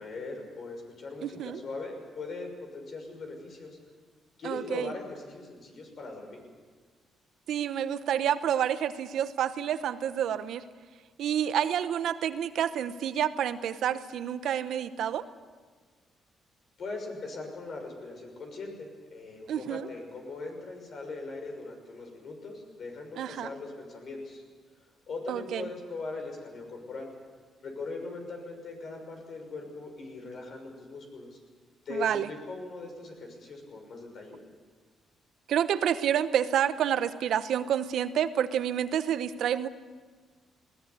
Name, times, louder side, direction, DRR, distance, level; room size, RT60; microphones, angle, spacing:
voice 1, 0.0-3.8 4.4-6.4 16.8-24.4 25.1-27.1 27.6-31.4 31.8-34.4, left 3 dB, 55° left, 3 dB, 6.2 m, -40 dB
voice 2, 1.2-1.6 4.4-4.9 7.5-10.6 11.2-15.3 19.5-19.9 23.2-23.5 25.3-25.7 31.9-32.3 35.5-39.7, right 9 dB, 75° right, 12 dB, 0.9 m, -29 dB
20.5 x 17.5 x 8.4 m, 1.5 s
cardioid pair, 90°, 0 cm